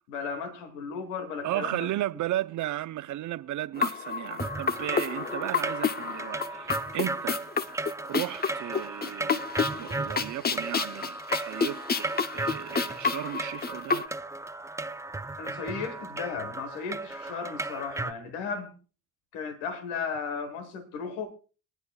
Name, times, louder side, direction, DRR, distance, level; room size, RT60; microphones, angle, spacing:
voice 1, 0.1-1.9 15.4-18.7 19.3-21.3, left 5 dB, 85° left, 1.5 m, -35 dB
voice 2, 1.4-7.4 8.0-9.4 9.7-14.0, right 14 dB, 55° right, 0.7 m, -34 dB
sound 1, 3.8-14.1, left 5 dB, 25° left, 0.7 m, -30 dB
sound 2, 4.4-18.1, right 2 dB, 10° right, 0.5 m, -35 dB
26.5 x 9.4 x 2.3 m
hypercardioid pair, 60°, 35 cm